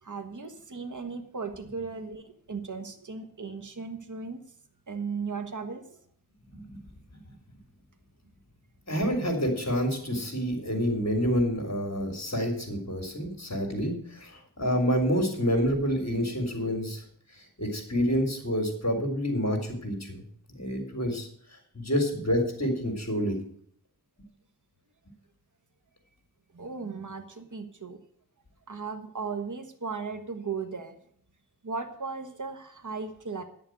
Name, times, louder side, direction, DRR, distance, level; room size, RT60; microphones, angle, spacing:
voice 1, 0.0-4.4 4.9-6.0 26.5-28.0 28.7-31.0 31.6-33.4, right 5 dB, 50° right, 6 dB, 1.4 m, -36 dB
voice 2, 8.9-17.0 17.4-20.2 20.6-21.3 21.7-23.4, equal, 45° left, 4 dB, 3.9 m, -28 dB
11.0 x 7.1 x 8.0 m, 0.62 s
wide cardioid pair, 40°, 38 cm